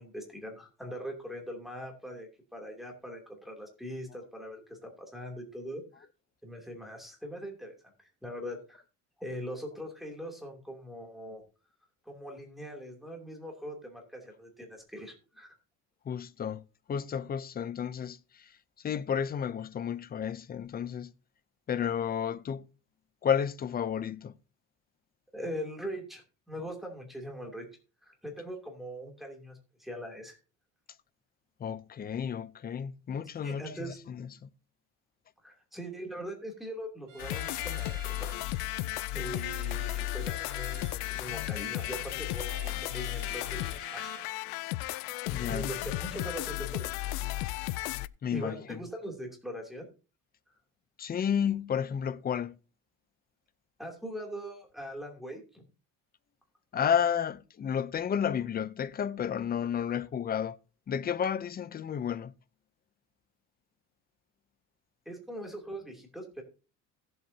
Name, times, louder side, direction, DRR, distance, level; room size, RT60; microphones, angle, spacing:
voice 1, 0.0-6.1 6.4-8.8 9.2-11.4 12.0-15.5 25.3-27.7 28.0-30.4 33.4-34.0 35.4-38.3 39.1-44.1 45.5-47.2 48.3-49.9 50.5-50.6 53.8-55.6 65.0-66.4, equal, ahead, 2.8 m, -41 dB
voice 2, 16.1-16.6 16.9-18.5 18.8-21.1 21.7-22.7 23.2-24.3 31.6-34.5 45.3-45.7 48.2-48.8 51.0-52.6 56.7-60.6 60.9-62.3, left 8 dB, 25° left, 0.6 m, -32 dB
Bowed string instrument, 37.1-44.3, right 7 dB, 65° right, 1.9 m, -51 dB
sound 1, 37.2-48.1, left 18 dB, 90° left, 0.5 m, -34 dB
17.5 x 7.8 x 2.8 m
cardioid pair, 125°, 35 cm